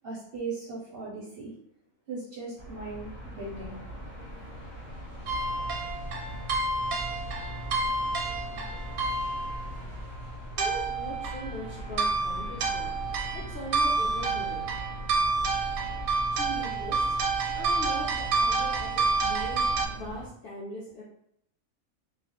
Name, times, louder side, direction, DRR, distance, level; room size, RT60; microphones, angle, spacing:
voice 1, 0.0-1.5 2.1-3.8, right 3 dB, 60° right, -6 dB, 0.6 m, -38 dB
sound 1, 2.6-20.3, equal, 45° left, 0.8 m, -42 dB
sound 2, 5.3-19.9, right 3 dB, 85° right, 1.0 m, -29 dB
voice 2, 10.5-12.9 13.3-14.7 16.3-17.2 17.6-21.0, left 1 dB, 65° left, -5 dB, 0.5 m, -40 dB
2.3 x 2.0 x 2.7 m, 0.73 s
omnidirectional pair, 1.4 m